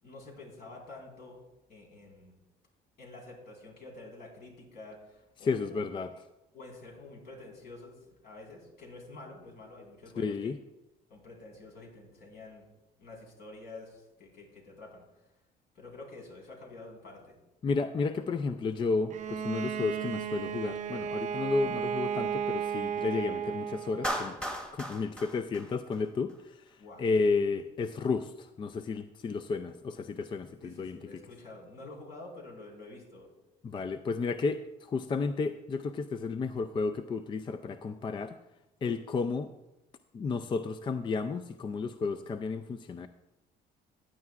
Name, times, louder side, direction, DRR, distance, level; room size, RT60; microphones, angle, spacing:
voice 1, 0.0-2.3 3.0-5.9 6.5-7.9 8.2-10.6 11.1-12.7 13.0-15.0 15.7-17.4 26.8-27.1 30.6-33.3, left 2 dB, 70° left, -2 dB, 4.2 m, -48 dB
voice 2, 5.4-6.1 10.2-10.6 17.6-26.3 27.0-31.0 33.6-34.6 34.9-38.4 38.8-39.5 40.1-43.1, left 4 dB, 30° left, 10 dB, 0.4 m, -32 dB
Bowed string instrument, 19.1-24.2, right 8 dB, 45° right, 0.6 m, -34 dB
Clapping, 24.0-26.3, equal, 5° left, 1.4 m, -36 dB
15.0 x 9.7 x 2.4 m, 0.98 s
cardioid pair, 110°, 17 cm